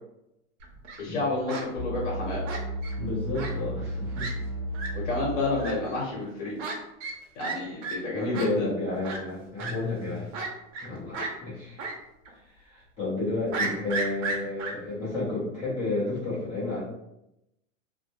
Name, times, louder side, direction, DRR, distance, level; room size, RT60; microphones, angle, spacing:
Fowl, 0.6-1.0 1.5-1.6 2.5-2.9 3.3-3.5 3.8-3.9 4.2-4.3 4.7-4.9 5.6-5.7 6.6-6.7 7.0-7.1 7.4-7.6 7.8-7.9 8.3-8.5 9.0-9.2 9.6-9.7 10.3-10.9 11.1-11.3 11.8-11.9 12.3-12.4 13.5-14.7, right 3 dB, 65° right, 0.7 m, -32 dB
voice 1, 1.0-2.4 4.9-6.6 7.3-8.6, left 2 dB, 65° left, -6 dB, 1.0 m, -30 dB
sound 1, 1.7-5.8, right 1 dB, 30° right, 0.8 m, -33 dB
voice 2, 3.0-4.3 5.0-5.1 8.1-10.3 10.8-11.8 12.3-16.8, left 2 dB, 15° left, -10 dB, 0.6 m, -31 dB
2.2 x 2.0 x 2.9 m, 0.87 s
supercardioid pair, 160°, 40 cm